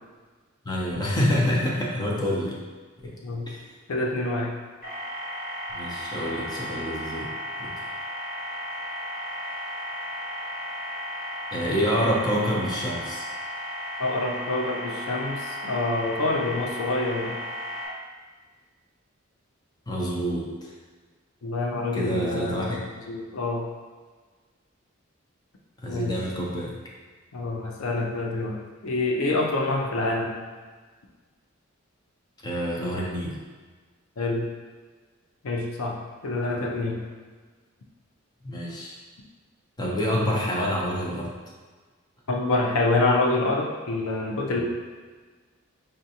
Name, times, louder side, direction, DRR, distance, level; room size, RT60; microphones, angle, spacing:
voice 1, 0.6-2.5 3.0-3.1 3.5-3.7 5.7-7.3 7.6-7.7 11.5-13.3 19.9-20.7 21.9-22.8 25.8-26.7 32.4-33.4 38.4-39.0 39.8-41.3 44.5-44.6, equal, 20° left, -4 dB, 0.6 m, -27 dB
voice 2, 3.9-4.5 14.0-17.3 21.4-23.7 25.9-26.2 27.3-30.4 34.2-34.5 35.4-36.0 36.2-37.0 42.3-44.6, left 2 dB, 85° left, 0 dB, 0.6 m, -26 dB
sound 1, 4.8-17.9, equal, 40° left, 1.2 m, -34 dB
5.3 x 2.5 x 2.8 m, 1.4 s
head